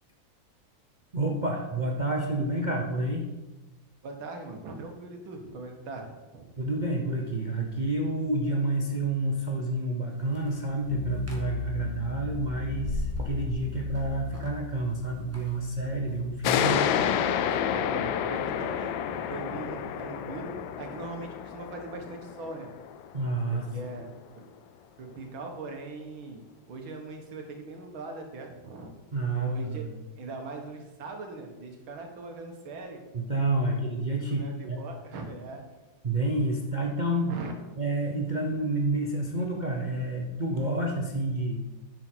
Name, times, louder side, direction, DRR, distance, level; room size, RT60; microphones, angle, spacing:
voice 1, 1.1-3.3 6.6-16.9 23.1-23.7 29.1-29.8 33.1-34.8 36.0-37.4 37.8-41.6, right 2 dB, 55° right, 0 dB, 0.5 m, -29 dB
voice 2, 4.0-6.5 17.3-22.7 23.5-24.1 24.4-24.5 25.0-28.9 29.4-29.9 30.2-33.0 33.6-33.8 34.3-35.6 37.3-37.5, right 3 dB, 75° right, 3 dB, 2.2 m, -41 dB
sound 1, 10.1-16.3, left 1 dB, 10° right, 1.4 m, -40 dB
sound 2, 10.9-22.0, left 6 dB, 60° left, 0.5 m, -40 dB
sound 3, 16.4-23.6, left 9 dB, 75° left, 1.3 m, -29 dB
10.0 x 6.8 x 4.5 m, 1.1 s
omnidirectional pair, 2.2 m